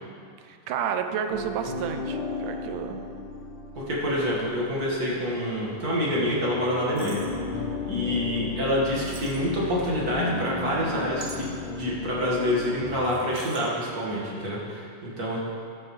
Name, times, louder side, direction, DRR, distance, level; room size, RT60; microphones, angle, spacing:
voice 1, 0.4-3.0, right 8 dB, 80° right, 7 dB, 2.0 m, -31 dB
sound 1, 1.3-6.5 6.8-13.1, left 2 dB, 55° left, 1.4 m, -35 dB
sound 2, 2.4-5.1 5.3-5.4 7.0-7.4 9.0-9.8 11.2-11.7 13.0-13.7, right 4 dB, 65° right, 1.7 m, -45 dB
voice 2, 3.7-7.2 7.8-15.4, equal, 40° right, -5 dB, 1.5 m, -27 dB
Organ, 4.2-14.4, left 8 dB, 80° left, 2.6 m, -43 dB
14.0 x 8.8 x 3.2 m, 2.3 s
omnidirectional pair, 3.9 m